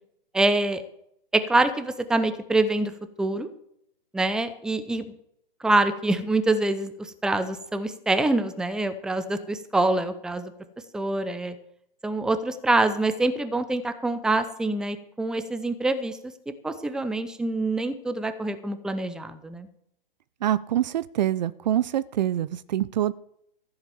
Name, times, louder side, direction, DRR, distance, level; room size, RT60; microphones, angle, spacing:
voice 1, 0.3-0.8 1.3-2.9 3.2-3.5 4.1-5.1 5.6-10.5 10.9-11.5 12.0-19.7, right 2 dB, ahead, 11 dB, 0.7 m, -25 dB
voice 2, 20.4-23.1, right 12 dB, 50° right, 18 dB, 0.6 m, -25 dB
14.5 x 8.0 x 7.1 m, 0.74 s
figure-of-eight pair, 120°, 29 cm